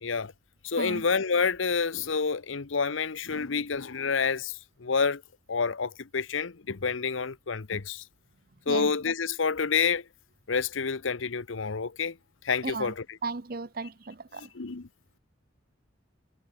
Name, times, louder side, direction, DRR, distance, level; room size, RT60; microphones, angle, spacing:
voice 1, 0.0-0.3 0.6-5.2 5.5-8.0 8.7-10.0 10.5-12.2 12.4-13.2 14.4-14.9, left 5 dB, 85° left, 0.9 m, -28 dB
voice 2, 12.6-12.9 13.2-14.5, right 3 dB, 50° right, 0.8 m, -35 dB
head